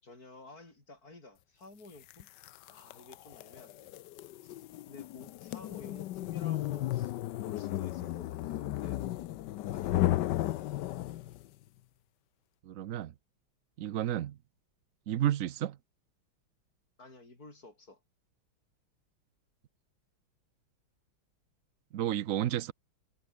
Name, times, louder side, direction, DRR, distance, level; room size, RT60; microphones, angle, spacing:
voice 1, 0.0-2.3 2.7-3.9 4.4-7.2 7.5-9.0 9.7-10.3 10.6-10.7 17.0-18.0, left 2 dB, 45° left, 7.3 m, -53 dB
sound 1, 2.1-11.5, left 14 dB, 70° left, 1.1 m, -34 dB
voice 2, 12.7-13.1 13.8-14.4 15.1-15.8 21.9-22.7, right 11 dB, 75° right, 0.7 m, -31 dB
omnidirectional pair, 2.3 m